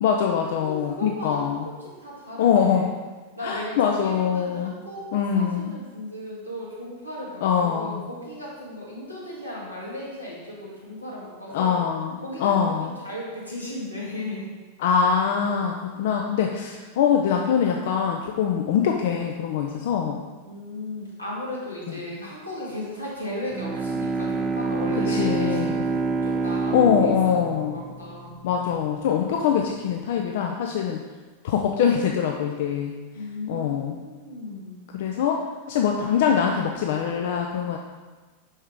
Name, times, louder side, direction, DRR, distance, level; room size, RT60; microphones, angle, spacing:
voice 1, 0.0-1.7 2.4-2.9 3.4-4.7 5.1-5.7 7.4-8.0 11.5-12.9 14.8-20.2 25.1-25.8 26.7-27.8 28.4-31.0 31.4-32.9 33.5-34.0 34.9-35.4 35.7-37.8, left 7 dB, 55° left, 2 dB, 0.4 m, -23 dB
voice 2, 0.6-2.9 3.4-11.8 12.2-14.5 15.9-16.8 20.5-28.4 33.1-34.8 35.1-35.2, left 1 dB, 85° left, -5 dB, 1.8 m, -36 dB
Bowed string instrument, 23.5-28.6, right 4 dB, 20° right, 0.5 m, -27 dB
5.7 x 5.5 x 3.6 m, 1.3 s
figure-of-eight pair, 90°, 0 cm